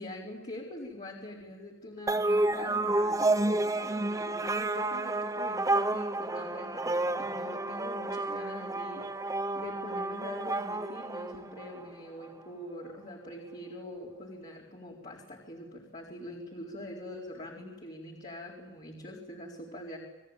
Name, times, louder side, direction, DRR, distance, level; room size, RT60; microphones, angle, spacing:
voice 1, 0.0-20.0, left 1 dB, 35° left, -3 dB, 4.4 m, -44 dB
sound 1, 2.1-11.9, right 2 dB, 15° right, 0.9 m, -30 dB
30.0 x 21.5 x 9.2 m, 1.1 s
head